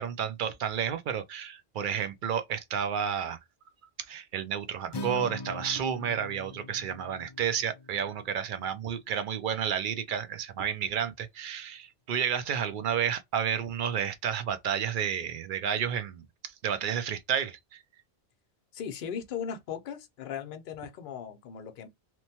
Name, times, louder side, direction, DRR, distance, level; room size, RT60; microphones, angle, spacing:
voice 1, 0.0-3.4 4.1-17.8, right 8 dB, 60° right, 0.6 m, -31 dB
Acoustic guitar, 4.9-9.1, left 1 dB, 45° left, 0.3 m, -42 dB
voice 2, 18.7-21.9, left 8 dB, 60° left, 0.7 m, -38 dB
3.0 x 2.1 x 2.7 m
omnidirectional pair, 1.1 m